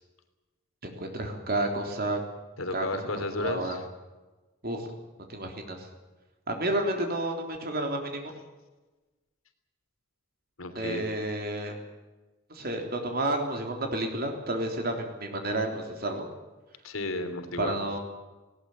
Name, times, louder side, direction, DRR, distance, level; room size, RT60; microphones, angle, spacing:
voice 1, 0.8-2.2 2.7-2.9 3.4-3.8 4.6-4.9 5.3-5.9 6.5-8.3 10.8-11.8 12.5-16.3 17.6-18.0, right 1 dB, 45° right, 3 dB, 3.5 m, -31 dB
voice 2, 2.6-3.8 10.6-11.1 16.8-17.7, left 2 dB, 85° left, 8 dB, 3.2 m, -33 dB
19.5 x 18.5 x 8.6 m, 1.2 s
head